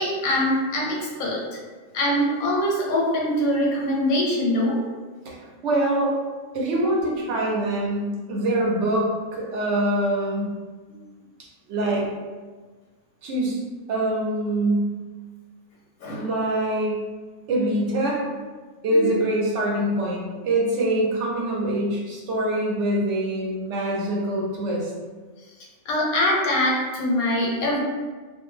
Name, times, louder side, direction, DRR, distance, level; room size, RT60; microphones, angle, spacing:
voice 1, 0.0-1.6 1.9-4.8 10.9-11.0 16.0-16.3 18.9-19.2 25.9-27.8, left 1 dB, 85° left, -3 dB, 1.1 m, -23 dB
voice 2, 5.2-6.2 6.5-10.5 11.7-12.1 13.2-13.6 13.9-14.9 16.1-17.0 17.5-18.2 18.8-24.9, right 1 dB, 65° right, -3 dB, 0.9 m, -24 dB
2.5 x 2.1 x 3.1 m, 1.4 s
omnidirectional pair, 1.5 m